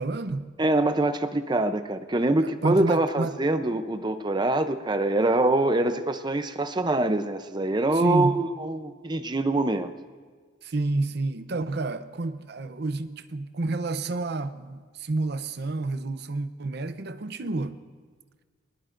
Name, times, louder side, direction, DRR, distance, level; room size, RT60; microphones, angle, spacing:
voice 1, 0.0-0.5 2.4-3.4 7.9-8.4 10.6-17.8, right 2 dB, 60° right, 0.7 m, -29 dB
voice 2, 0.6-9.9, right 2 dB, 25° right, 0.6 m, -24 dB
23.0 x 19.5 x 2.6 m
head